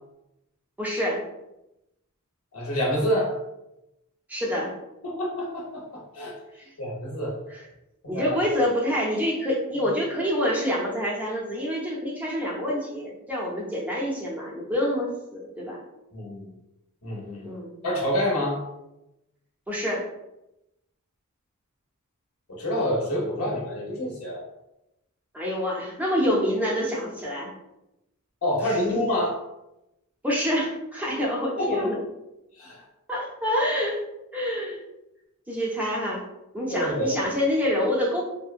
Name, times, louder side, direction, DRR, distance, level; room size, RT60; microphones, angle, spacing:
voice 1, 0.8-1.2 4.3-4.7 6.6-6.7 7.5-7.6 8.1-15.8 17.4-17.7 19.7-20.1 25.3-27.5 28.7-28.8 30.2-32.0 33.1-34.0 34.3-34.8 35.5-36.2 36.5-38.2, equal, 5° right, -4 dB, 0.5 m, -27 dB
voice 2, 2.5-3.3 5.0-6.4 6.8-7.4 8.1-8.4 16.1-16.5 17.0-17.5 17.8-18.6 22.5-24.4 28.4-29.4 31.6-31.9 32.6-32.8 36.7-37.1, equal, 85° left, -3 dB, 0.8 m, -27 dB
2.6 x 2.1 x 2.4 m, 0.89 s
head